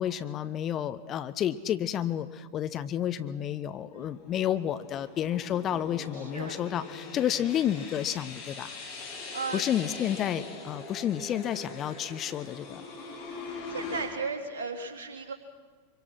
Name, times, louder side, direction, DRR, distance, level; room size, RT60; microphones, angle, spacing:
voice 1, 0.0-8.7 9.5-12.8, left 10 dB, 30° left, 12 dB, 0.9 m, -30 dB
sound 1, 4.0-14.1, left 3 dB, 45° left, 7.0 m, -42 dB
voice 2, 6.1-6.6 9.3-9.6 13.7-15.3, right 4 dB, 60° right, 2 dB, 3.3 m, -35 dB
25.0 x 24.0 x 6.1 m, 1.4 s
figure-of-eight pair, 90°, 0 cm